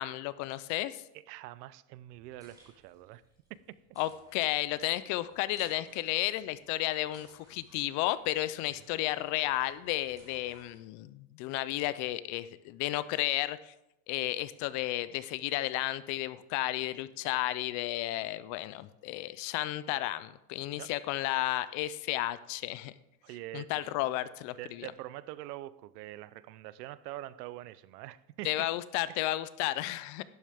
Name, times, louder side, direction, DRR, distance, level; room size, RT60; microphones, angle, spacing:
voice 1, 0.0-1.0 4.0-13.7 14.1-22.9 23.5-24.9 28.4-30.2, left 16 dB, 40° left, 0.4 m, -33 dB
voice 2, 1.1-3.2 20.8-20.9 23.2-23.8 24.6-28.7 29.1-29.2, right 15 dB, 90° right, 0.7 m, -44 dB
sound 1, 2.1-10.8, right 1 dB, 10° right, 4.2 m, -62 dB
12.0 x 11.0 x 3.5 m
supercardioid pair, 155°, 46 cm